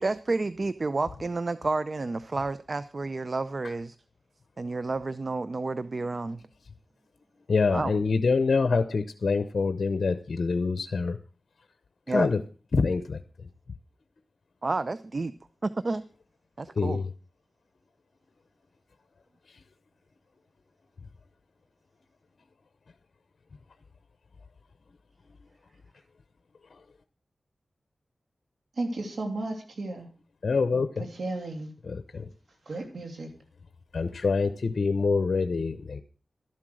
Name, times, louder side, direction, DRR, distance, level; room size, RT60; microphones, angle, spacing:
voice 1, 0.0-4.0 4.6-6.4 7.7-7.9 12.1-12.3 14.6-15.3 15.6-16.0 16.6-17.0, right 3 dB, 50° right, 0.5 m, -30 dB
voice 2, 7.5-11.2 12.1-12.4 12.7-13.2 16.8-17.1 26.7-26.8 30.4-31.1 31.8-32.3 33.9-36.0, left 4 dB, 70° left, 0.8 m, -26 dB
voice 3, 28.8-30.1 31.2-31.7 32.7-33.3, right 2 dB, 80° right, 2.9 m, -33 dB
12.5 x 7.6 x 6.3 m
cardioid pair, 50°, 0 cm